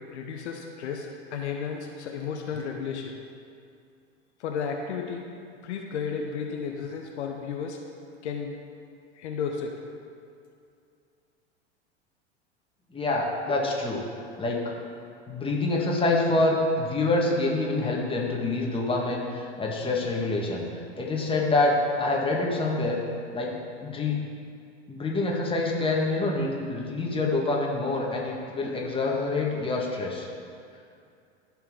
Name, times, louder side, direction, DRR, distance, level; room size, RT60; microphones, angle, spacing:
voice 1, 0.1-3.1 4.4-5.3 5.6-7.8 8.2-8.6 9.1-9.8, left 6 dB, 70° left, 2 dB, 0.9 m, -33 dB
voice 2, 12.9-14.0 14.4-14.7 15.3-20.7 21.0-23.0 23.3-23.5 23.8-24.2 24.9-30.3, left 2 dB, 15° left, -2 dB, 1.7 m, -26 dB
13.5 x 4.6 x 3.7 m, 2.4 s
hypercardioid pair, 90°, 35 cm